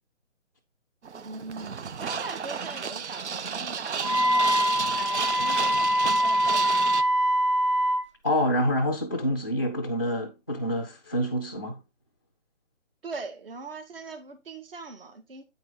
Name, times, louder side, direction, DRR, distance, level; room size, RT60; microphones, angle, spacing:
sound 1, 1.0-7.0, right 6 dB, 65° right, 0.8 m, -32 dB
voice 1, 1.2-6.9 13.0-15.4, right 3 dB, 50° right, 2.0 m, -41 dB
Wind instrument woodwind instrument, 4.0-8.1, equal, 25° right, 0.7 m, -23 dB
voice 2, 8.2-11.8, equal, 20° left, 0.4 m, -27 dB
8.8 x 4.8 x 3.9 m
figure-of-eight pair, 155°, 37 cm